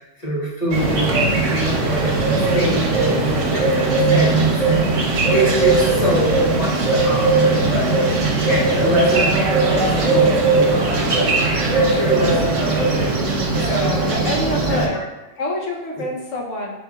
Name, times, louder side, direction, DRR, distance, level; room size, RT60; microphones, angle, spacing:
voice 1, 0.2-4.8 5.3-7.9 8.5-13.2 13.7-14.3 14.7-15.1 15.9-16.0, equal, 35° left, -6 dB, 1.2 m, -25 dB
sound 1, 0.7-14.9, right 3 dB, 80° right, 1.2 m, -18 dB
voice 2, 8.7-9.2 13.5-15.0 15.4-16.8, left 1 dB, 85° left, -1 dB, 1.2 m, -27 dB
5.5 x 3.7 x 2.3 m, 1.0 s
omnidirectional pair, 1.3 m